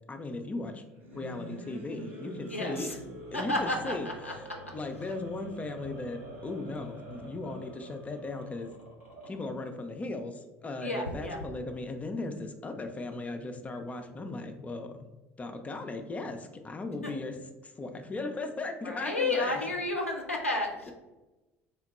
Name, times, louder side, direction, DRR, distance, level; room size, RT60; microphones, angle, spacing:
voice 1, 0.1-0.8 1.1-2.9 3.3-4.4 4.7-8.7 9.3-15.0 15.4-17.4 17.6-19.6, left 2 dB, 20° left, 5 dB, 0.4 m, -37 dB
sound 1, 0.9-9.7, right 1 dB, 80° right, 1.0 m, -46 dB
voice 2, 2.5-3.0 3.3-4.3 10.8-11.4 17.0-17.1 18.8-20.9, left 2 dB, 90° left, 0 dB, 0.3 m, -31 dB
3.6 x 2.1 x 4.1 m, 1.1 s
figure-of-eight pair, 60°, 7 cm